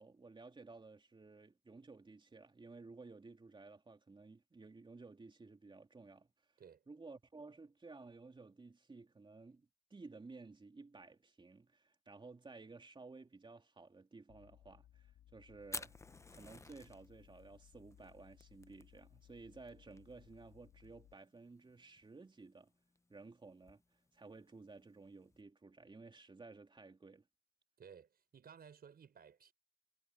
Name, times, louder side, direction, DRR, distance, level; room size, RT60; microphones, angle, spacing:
voice 1, 0.0-6.3 6.9-16.0 16.3-22.7 23.1-23.8 24.1-27.2, right 3 dB, 25° right, 3.0 m, -55 dB
sound 1, 14.3-21.2, left 12 dB, 80° left, 3.4 m, -64 dB
Fire, 15.6-25.4, left 3 dB, 15° left, 0.8 m, -54 dB
voice 2, 27.8-29.5, right 7 dB, 50° right, 5.8 m, -57 dB
cardioid pair, 90°, 20 cm